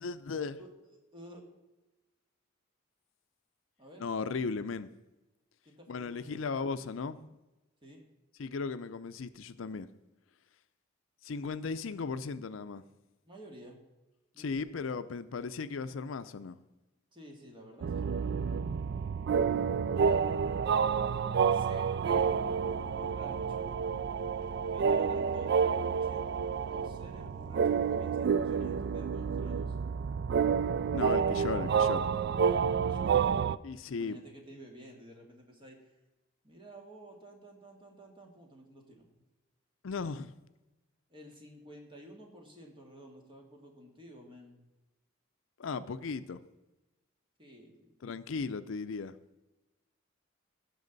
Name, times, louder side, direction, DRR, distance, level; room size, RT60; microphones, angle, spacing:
voice 1, 0.0-0.6 4.0-4.9 5.9-7.4 8.4-9.9 11.2-12.8 14.4-16.6 30.9-32.0 33.6-34.2 39.8-40.3 45.6-46.4 48.0-49.2, left 4 dB, 75° left, 0.5 m, -36 dB
voice 2, 0.6-1.5 3.8-4.1 5.6-6.4 7.8-8.0 13.2-13.8 14.3-14.7 17.1-18.1 19.9-20.2 21.5-22.4 22.9-23.7 24.7-26.3 26.7-29.8 32.8-33.4 34.0-36.0 36.4-39.1 41.1-44.6 47.4-48.0, right 1 dB, 25° right, 1.9 m, -52 dB
sound 1, 17.8-33.6, right 6 dB, 55° right, 0.3 m, -29 dB
16.0 x 6.4 x 4.0 m
head